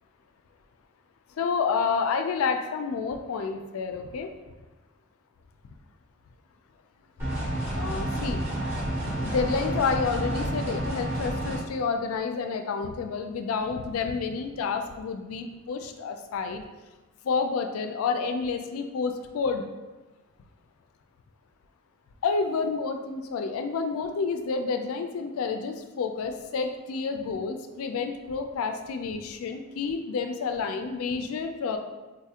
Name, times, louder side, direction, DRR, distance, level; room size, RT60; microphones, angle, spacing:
voice 1, 1.4-4.3 7.7-8.4 9.1-16.6 17.2-19.7 22.2-31.8, left 5 dB, 80° left, 6 dB, 0.3 m, -29 dB
sound 1, 7.2-11.6, right 1 dB, 15° right, 1.2 m, -30 dB
4.0 x 2.4 x 2.8 m, 1.1 s
head